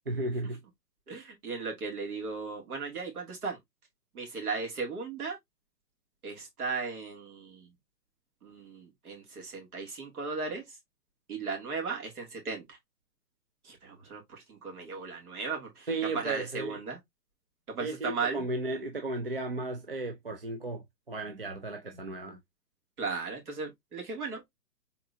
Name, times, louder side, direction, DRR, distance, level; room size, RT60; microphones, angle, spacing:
voice 1, 0.1-0.6 15.9-16.8 17.8-22.4, right 2 dB, 35° right, 0.5 m, -35 dB
voice 2, 1.1-3.6 4.1-5.4 6.2-7.7 8.4-10.6 11.3-12.8 13.6-15.9 16.1-17.0 17.7-18.4 23.0-24.5, right 4 dB, 60° right, 2.7 m, -36 dB
4.3 x 3.9 x 2.7 m
hypercardioid pair, 170°, 49 cm